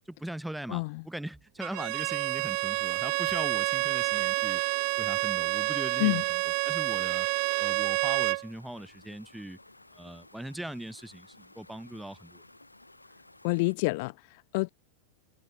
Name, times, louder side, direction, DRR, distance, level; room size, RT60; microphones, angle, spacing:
voice 1, 0.1-4.6 5.0-7.3 7.6-9.6 9.9-12.4, right 1 dB, 5° right, 6.2 m, -40 dB
voice 2, 0.7-1.0 6.0-6.2 13.4-14.7, left 26 dB, 50° left, 0.5 m, -28 dB
Bowed string instrument, 1.6-8.5, right 34 dB, 45° right, 0.8 m, -28 dB
sound 1, 2.1-13.7, left 2 dB, 85° left, 5.8 m, -55 dB
figure-of-eight pair, 90°, 0 cm